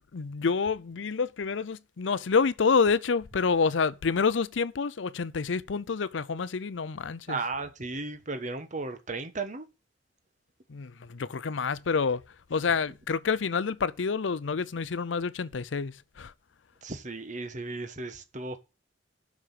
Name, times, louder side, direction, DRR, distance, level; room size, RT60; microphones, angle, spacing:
voice 1, 0.0-7.4 10.7-12.2 12.5-16.3, left 5 dB, 85° left, 0.6 m, -28 dB
voice 2, 7.3-9.7 16.8-18.6, right 3 dB, 40° right, 1.3 m, -35 dB
7.6 x 6.4 x 8.0 m
head